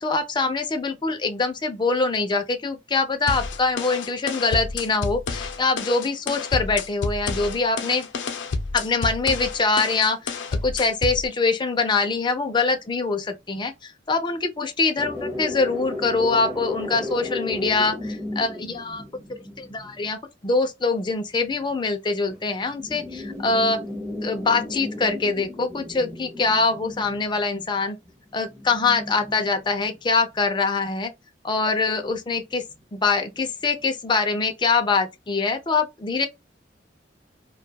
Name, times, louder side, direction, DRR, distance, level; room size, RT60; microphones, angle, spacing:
voice 1, 0.0-8.1 8.7-19.0 19.3-23.8 24.2-28.0 28.3-31.1 31.4-32.6 32.9-36.3, left 4 dB, 25° left, 0.5 m, -24 dB
sound 1, 3.3-11.3, left 4 dB, 90° left, 0.6 m, -30 dB
sound 2, 15.0-20.1 21.4-21.8 22.3-30.4 32.1-33.0 33.4-33.5 33.8-33.9, left 2 dB, 15° right, 0.7 m, -35 dB
2.3 x 2.3 x 2.7 m
head